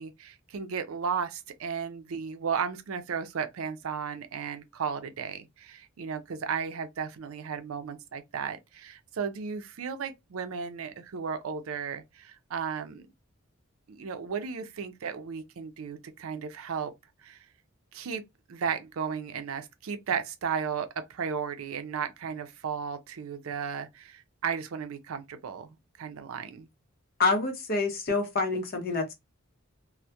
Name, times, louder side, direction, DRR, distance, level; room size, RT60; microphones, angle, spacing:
voice 1, 0.0-13.1 13.9-16.9 17.2-17.4 17.9-26.7, right 6 dB, 80° right, 0.4 m, -35 dB
voice 2, 27.2-29.1, left 3 dB, 45° left, 0.7 m, -27 dB
2.2 x 2.0 x 2.7 m
head